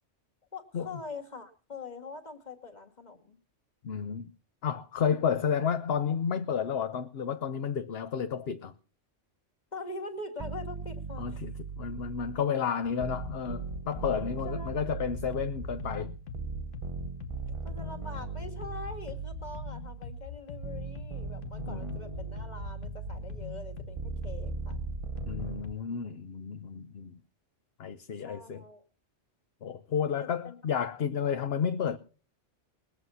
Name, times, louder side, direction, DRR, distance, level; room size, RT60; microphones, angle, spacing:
voice 1, 0.5-3.4 9.7-11.4 14.5-15.0 17.6-24.8 28.2-28.8 30.2-30.6 31.2-31.4, left 3 dB, 35° left, 2.4 m, -43 dB
voice 2, 3.8-4.3 4.6-8.7 11.2-16.1 21.6-22.0 25.2-27.2 27.8-28.6 29.6-32.0, left 7 dB, 60° left, 1.0 m, -31 dB
sound 1, 10.4-12.6 13.0-20.1 20.6-25.6, right 5 dB, 30° right, 0.8 m, -39 dB
sound 2, 12.8-25.7, left 5 dB, 90° left, 1.5 m, -43 dB
21.0 x 8.0 x 5.6 m
omnidirectional pair, 1.2 m